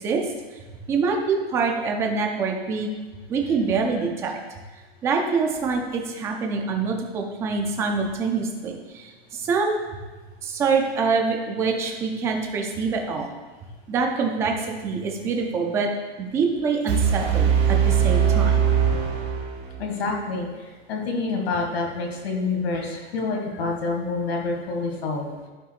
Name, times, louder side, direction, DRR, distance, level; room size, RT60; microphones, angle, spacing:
voice 1, 0.9-2.9 3.3-4.3 5.0-9.1 9.4-9.8 10.4-13.3 13.9-15.9 16.2-18.6, right 4 dB, 10° right, 2 dB, 0.4 m, -25 dB
sound 1, 16.9-19.9, right 8 dB, 40° right, 2.0 m, -21 dB
voice 2, 19.8-25.5, left 3 dB, 75° left, 1 dB, 2.4 m, -27 dB
15.0 x 5.6 x 2.4 m, 1.3 s
supercardioid pair, 165°, 31 cm